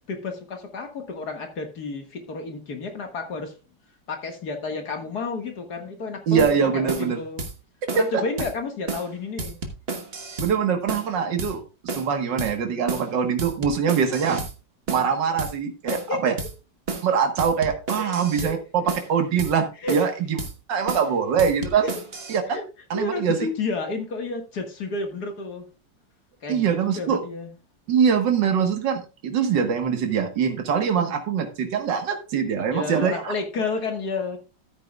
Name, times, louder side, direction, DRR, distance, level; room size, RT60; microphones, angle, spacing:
voice 1, 0.1-3.5 4.1-6.4 6.7-7.4 7.9-9.6 15.9-16.4 18.0-18.6 19.8-20.1 20.7-21.0 21.8-21.9 22.5-22.6 22.9-25.7 26.4-27.5 31.0-31.2 32.7-34.4, left 3 dB, 60° left, 4 dB, 2.2 m, -31 dB
voice 2, 6.3-7.2 8.0-8.2 10.4-14.5 14.9-16.4 17.0-20.4 20.7-21.8 22.3-22.6 22.9-23.5 26.5-27.2 27.9-33.3, right 7 dB, 80° right, 5 dB, 2.1 m, -23 dB
sound 1, 6.4-6.5 6.9-7.1 7.4-7.5 7.9-8.1 8.4-8.5 8.9-9.1 9.4-10.5 10.9-11.1 11.4-11.5 11.9-12.1 12.4-12.5 12.9-13.1 13.4-14.5 14.9-15.1 15.4-15.5 15.9-16.1 16.4-16.5 16.9-17.1 17.4-18.5 18.9-19.1 19.4-19.5 19.9-20.1 20.4-20.5 20.9-21.1 21.4-22.4, right 3 dB, 35° right, 1.4 m, -32 dB
13.5 x 9.1 x 2.3 m, 0.30 s
omnidirectional pair, 1.9 m